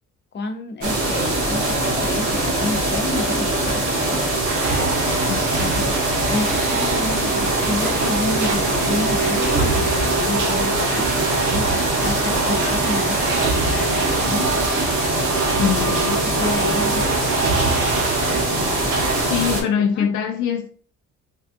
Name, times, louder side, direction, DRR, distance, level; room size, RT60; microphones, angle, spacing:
voice 1, 0.3-4.3 5.6-5.9 6.3-14.5 15.6-17.8 18.8-20.1, left 3 dB, 35° left, 0.7 m, -30 dB
sound 1, 0.8-19.6, right 2 dB, 50° right, 1.3 m, -22 dB
sound 2, 4.5-19.2, right 4 dB, 90° right, 0.8 m, -26 dB
voice 2, 5.3-5.8 15.5-16.1 19.2-20.7, left 8 dB, 75° left, 0.5 m, -24 dB
3.5 x 2.4 x 2.5 m
cardioid pair, 90°, 30 cm